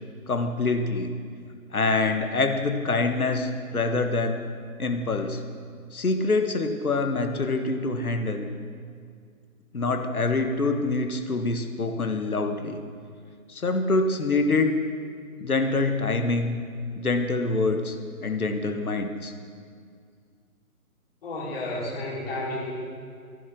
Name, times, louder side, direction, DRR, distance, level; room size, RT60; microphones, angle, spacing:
voice 1, 0.3-1.1 1.7-4.4 4.8-5.4 5.9-8.5 9.7-12.8 13.5-14.8 15.4-16.6 17.0-18.0 18.2-19.3, left 3 dB, 75° left, 6 dB, 1.5 m, -25 dB
voice 2, 21.2-22.7, left 1 dB, 40° left, -4 dB, 4.4 m, -31 dB
13.5 x 11.0 x 6.3 m, 2.1 s
figure-of-eight pair, 140°, 43 cm